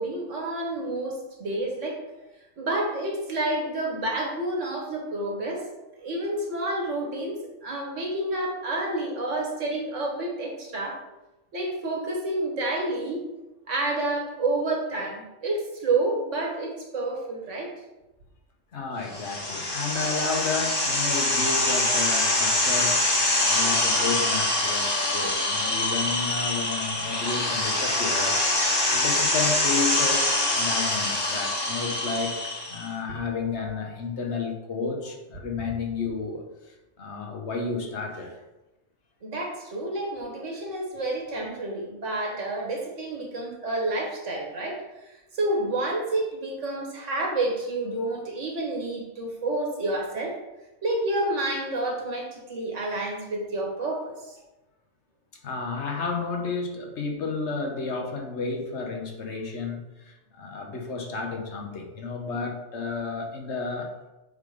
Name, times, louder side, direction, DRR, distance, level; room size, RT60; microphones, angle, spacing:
voice 1, 0.0-2.0 2.6-5.6 6.0-11.0 11.5-13.2 13.7-17.7 39.2-44.8 45.3-50.3 50.8-54.4, right 2 dB, 85° right, -1 dB, 1.9 m, -29 dB
voice 2, 18.7-23.0 23.4-28.4 28.9-32.4 32.7-38.4 55.4-63.9, left 4 dB, 70° left, 2 dB, 1.3 m, -32 dB
sound 1, 19.1-32.9, left 1 dB, 20° left, 1.2 m, -24 dB
7.2 x 3.8 x 5.0 m, 1.0 s
omnidirectional pair, 1.2 m